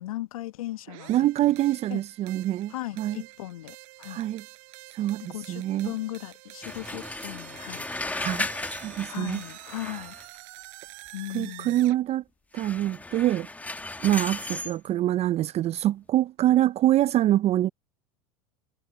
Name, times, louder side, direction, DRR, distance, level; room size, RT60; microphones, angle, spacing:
voice 1, 0.0-1.1 1.4-1.5 1.9-2.0 2.7-4.2 5.2-7.8 8.2-8.4 9.1-10.1 11.1-11.8, left 15 dB, 80° left, 1.4 m, -37 dB
sound 1, 0.9-12.0, right 25 dB, 65° right, 6.2 m, -47 dB
voice 2, 1.1-3.2 4.1-4.4 4.9-5.9 8.2-9.4 9.8-10.0 11.3-12.2 12.5-13.5 14.0-17.7, right 13 dB, 35° right, 0.5 m, -25 dB
sound 2, 6.6-10.4 12.5-14.8, left 2 dB, 10° left, 1.2 m, -35 dB
hypercardioid pair, 90°, 18 cm